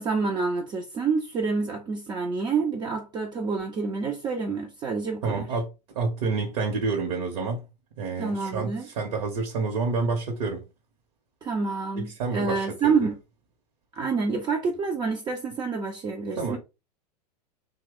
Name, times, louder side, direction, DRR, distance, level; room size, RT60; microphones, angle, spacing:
voice 1, 0.0-5.5 8.2-8.9 11.4-13.2 14.0-16.6, right 4 dB, 20° right, 0.4 m, -28 dB
voice 2, 5.2-7.6 8.0-10.6 12.0-13.1 16.4-16.6, right 4 dB, 55° right, 0.9 m, -29 dB
2.8 x 2.1 x 3.6 m
figure-of-eight pair, 90°, 21 cm